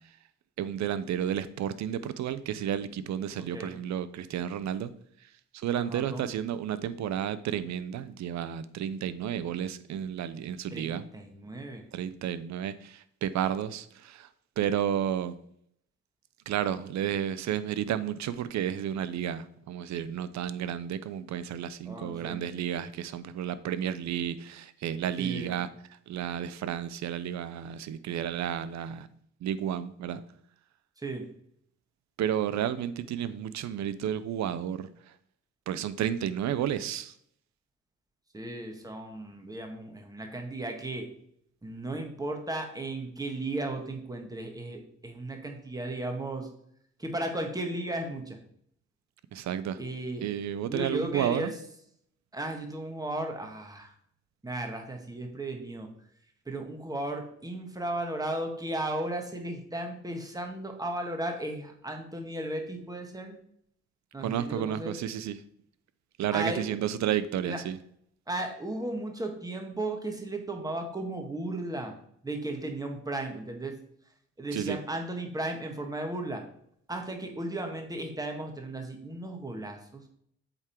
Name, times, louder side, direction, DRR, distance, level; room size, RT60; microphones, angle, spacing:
voice 1, 0.6-4.9 5.5-11.0 11.9-14.3 14.6-15.4 16.5-25.7 26.1-29.1 29.4-30.2 32.2-34.9 35.7-37.1 49.3-49.8 50.2-51.5 64.2-65.4 66.2-67.8 74.5-74.8, right 10 dB, 65° right, 14 dB, 0.6 m, -32 dB
voice 2, 3.4-3.8 5.7-6.2 10.7-11.9 21.8-22.4 25.2-25.6 31.0-31.3 38.3-41.1 41.6-46.5 47.0-48.4 49.8-50.2 50.7-51.5 52.3-53.9 54.4-55.9 56.5-63.4 64.1-65.0 66.3-66.7 67.4-67.6 68.3-72.0 72.2-73.8 74.4-76.4 76.9-80.0, right 1 dB, 10° right, 3 dB, 1.5 m, -35 dB
7.9 x 3.7 x 4.5 m, 0.68 s
cardioid pair, 90°, 30 cm